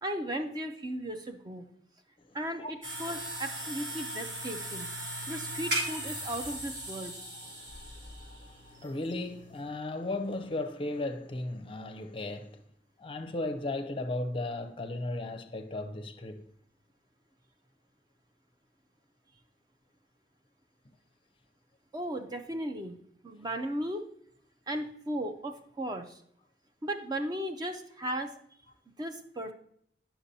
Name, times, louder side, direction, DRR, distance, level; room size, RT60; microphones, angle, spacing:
voice 1, 0.0-1.7 2.3-4.9 5.3-7.1 21.9-23.0 23.2-24.0 24.7-26.2 26.8-28.3 29.0-29.5, right 1 dB, 20° right, 0.5 m, -36 dB
voice 2, 2.2-2.7 5.2-5.3 7.4-12.6 13.0-16.4, left 2 dB, 30° left, 0.5 m, -36 dB
sound 1, 2.8-9.6, right 1 dB, 70° right, 3.1 m, -38 dB
9.8 x 5.9 x 2.7 m
head